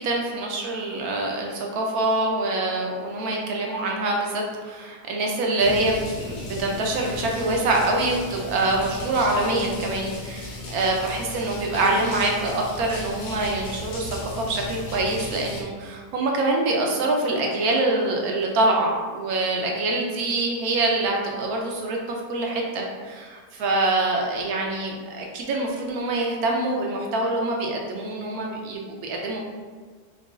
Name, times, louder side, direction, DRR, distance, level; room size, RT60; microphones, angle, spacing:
voice 1, 0.0-22.0 22.3-29.4, right 2 dB, 75° right, 0 dB, 1.1 m, -25 dB
sound 1, 5.6-15.6, left 2 dB, 85° left, 1.2 m, -36 dB
4.8 x 2.3 x 2.4 m, 1.5 s
omnidirectional pair, 1.7 m